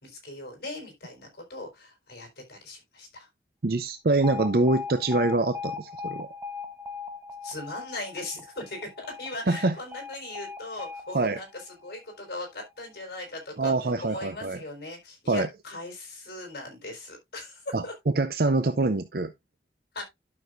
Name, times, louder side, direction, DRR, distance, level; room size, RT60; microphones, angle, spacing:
voice 1, 0.0-3.3 7.4-13.7 14.0-17.9 19.9-20.0, left 2 dB, 60° left, 4.3 m, -39 dB
voice 2, 3.6-6.3 9.5-9.7 11.1-11.4 13.6-14.6 15.3-15.5 17.7-19.3, right 2 dB, 55° right, 0.6 m, -25 dB
Alarm, 4.2-12.3, left 5 dB, 15° right, 1.0 m, -39 dB
11.5 x 6.3 x 2.5 m
head